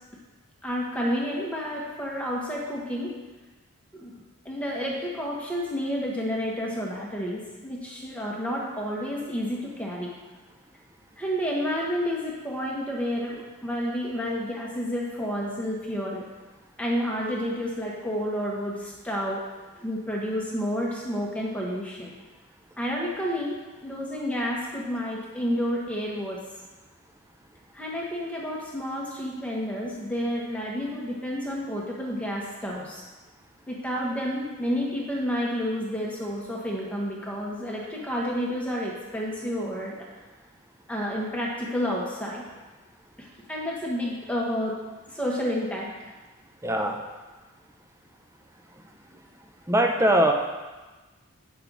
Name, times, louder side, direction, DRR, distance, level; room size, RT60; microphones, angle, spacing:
voice 1, 0.6-3.1 3.9-4.2 4.4-10.1 11.2-16.3 16.8-19.4 19.8-22.1 22.8-26.4 27.7-33.0 33.7-40.0 40.9-42.4 43.2-44.8 45.1-45.9, equal, 5° left, -3 dB, 1.1 m, -30 dB
voice 2, 46.6-47.0 48.8-49.2 49.7-50.3, right 1 dB, 10° right, 3 dB, 0.6 m, -23 dB
8.8 x 6.0 x 3.9 m, 1.2 s
head